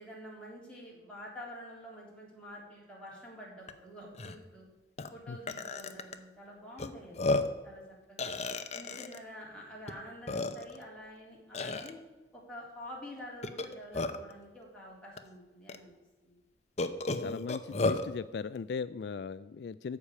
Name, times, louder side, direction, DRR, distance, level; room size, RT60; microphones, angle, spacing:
voice 1, 0.0-4.7 5.1-7.2 7.6-8.4 8.7-12.0 12.3-15.9 16.2-16.4, equal, 5° left, -5 dB, 3.7 m, -48 dB
Burping eructation, 3.7-3.8 4.1-4.4 5.0-5.1 5.5-6.2 6.8-6.9 7.2-7.6 8.2-9.2 9.9-10.0 10.3-10.8 11.5-11.9 13.4-14.3 15.2-15.3 15.7-15.8 16.8-18.1, left 2 dB, 40° left, 0.7 m, -32 dB
voice 2, 17.2-20.0, left 5 dB, 65° left, 15 dB, 0.3 m, -38 dB
13.5 x 4.9 x 8.6 m, 1.2 s
head